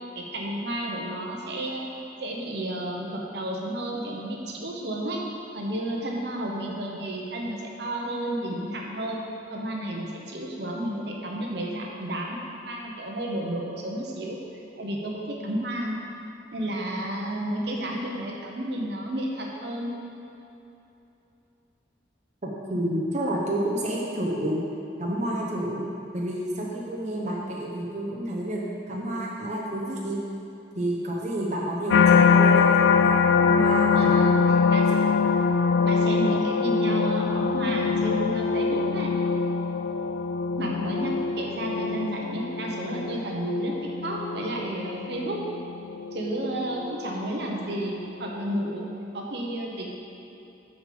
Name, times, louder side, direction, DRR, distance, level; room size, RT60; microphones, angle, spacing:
voice 1, 0.1-1.8 2.2-5.2 5.5-9.2 9.5-12.4 12.7-14.4 14.8-16.0 16.5-19.9 33.9-34.8 35.8-39.1 40.6-43.7 44.0-45.4 46.1-48.8 49.1-49.9, right 1 dB, 60° right, -1 dB, 1.0 m, -31 dB
voice 2, 22.4-24.6 25.0-25.9 26.1-28.6 28.9-30.2 30.7-34.3 34.6-35.0, right 1 dB, 40° right, -3 dB, 0.9 m, -30 dB
sound 1, 31.9-47.1 47.6-48.0, left 5 dB, 70° left, 0.3 m, -23 dB
6.9 x 5.1 x 6.8 m, 2.9 s
head